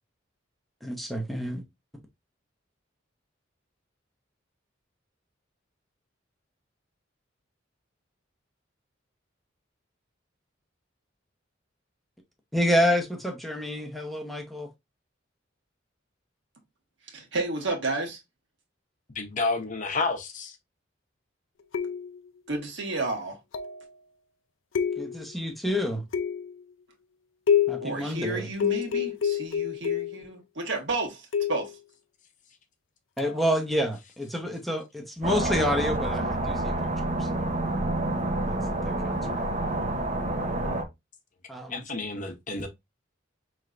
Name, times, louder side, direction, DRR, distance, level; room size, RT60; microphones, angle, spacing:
voice 1, 0.8-1.6 12.5-14.7 25.0-26.0 27.7-28.5 33.2-37.5 38.5-38.6 38.8-39.5 41.5-41.8, equal, ahead, 0.8 m, -29 dB
voice 2, 17.1-18.2 22.5-23.4 27.8-31.7, right 2 dB, 65° right, 1.5 m, -31 dB
voice 3, 19.1-20.6 41.6-42.7, left 3 dB, 40° left, 0.8 m, -30 dB
sound 1, 21.7-22.3 23.5-23.9 24.7-25.4 26.1-26.6 27.5-27.9 28.6-30.2 31.3-31.7 33.2-33.4, left 8 dB, 85° left, 0.5 m, -27 dB
sound 2, 35.2-40.8, right 2 dB, 35° right, 0.7 m, -28 dB
5.4 x 3.2 x 2.4 m
head